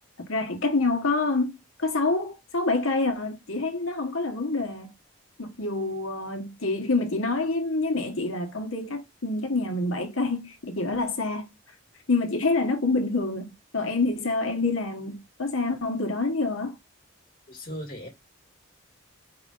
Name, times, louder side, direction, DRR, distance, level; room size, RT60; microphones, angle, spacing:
voice 1, 0.3-4.9 5.4-11.5 12.1-16.8, left 3 dB, 75° left, 1.2 m, -27 dB
voice 2, 17.5-18.1, equal, 45° left, 1.7 m, -37 dB
4.9 x 2.5 x 3.7 m
head